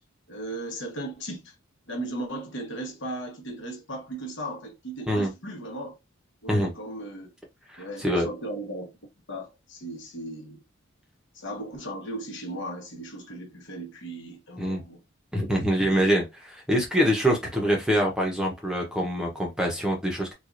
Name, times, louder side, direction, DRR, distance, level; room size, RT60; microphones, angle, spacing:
voice 1, 0.3-1.5 1.9-6.0 6.4-7.3 7.8-8.9 9.3-10.6 11.3-15.0, right 1 dB, 60° left, 1.2 m, -37 dB
voice 2, 7.7-8.3 14.6-14.8 15.3-20.3, equal, 5° right, 0.8 m, -25 dB
4.6 x 2.4 x 2.5 m
head